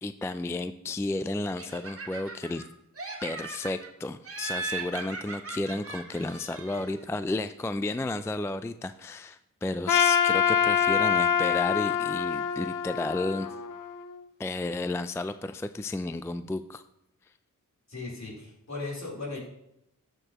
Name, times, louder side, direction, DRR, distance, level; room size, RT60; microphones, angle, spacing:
voice 1, 0.0-2.6 3.2-13.5 14.4-16.8, left 2 dB, 10° left, 11 dB, 0.3 m, -32 dB
Laughter, 1.6-2.7 3.0-3.9 4.3-7.0, right 4 dB, 45° right, 1.6 m, -38 dB
Trumpet, 9.9-14.2, left 8 dB, 70° left, 0.6 m, -25 dB
voice 2, 17.9-19.4, left 3 dB, 55° left, -4 dB, 3.7 m, -37 dB
13.0 x 6.8 x 3.0 m, 0.82 s
cardioid pair, 70°, 33 cm